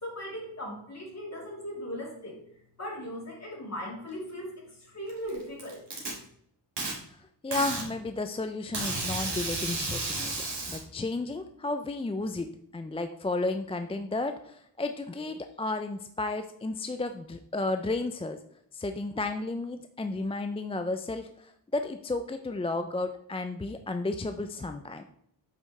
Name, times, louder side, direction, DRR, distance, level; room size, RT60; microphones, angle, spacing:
voice 1, 0.0-2.4 2.8-5.8, equal, 35° left, -3 dB, 3.0 m, -38 dB
Packing tape duct tape, 5.1-6.1 6.8-6.9 7.5-7.9 8.7-10.8, right 2 dB, 65° right, 2.3 m, -32 dB
voice 2, 7.4-10.3 10.7-18.4 18.7-25.0, left 2 dB, 15° left, 7 dB, 0.3 m, -33 dB
8.3 x 5.4 x 3.1 m, 0.71 s
wide cardioid pair, 110°, 44 cm